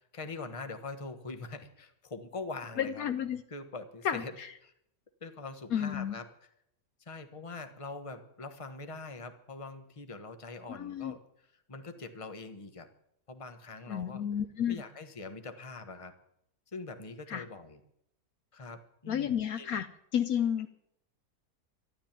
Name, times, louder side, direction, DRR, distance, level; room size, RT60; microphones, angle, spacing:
voice 1, 0.1-3.1 3.5-4.3 4.6-4.7 5.2-6.2 7.1-11.2 11.7-12.9 13.3-14.2 14.7-16.1 16.7-17.8 18.5-19.7, left 3 dB, 20° left, 8 dB, 1.2 m, -43 dB
voice 2, 2.8-3.4 4.0-4.5 5.7-6.2 10.7-11.2 13.9-14.8 17.3-17.4 19.1-19.9 20.1-20.7, left 9 dB, 70° left, 10 dB, 1.2 m, -31 dB
13.0 x 12.0 x 9.0 m, 0.75 s
omnidirectional pair, 1.7 m